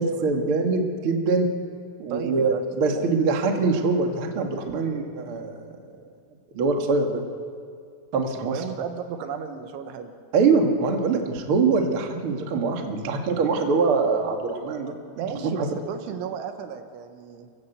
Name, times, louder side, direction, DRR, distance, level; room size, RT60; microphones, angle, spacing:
voice 1, 0.0-1.5 2.0-5.7 6.5-7.2 8.1-8.6 10.3-14.9 15.6-15.7, right 4 dB, 50° right, 3 dB, 1.6 m, -23 dB
voice 2, 2.1-3.1 8.4-10.1 15.2-17.5, right 7 dB, 75° right, 7 dB, 3.6 m, -33 dB
27.0 x 15.5 x 8.2 m, 2.2 s
omnidirectional pair, 5.7 m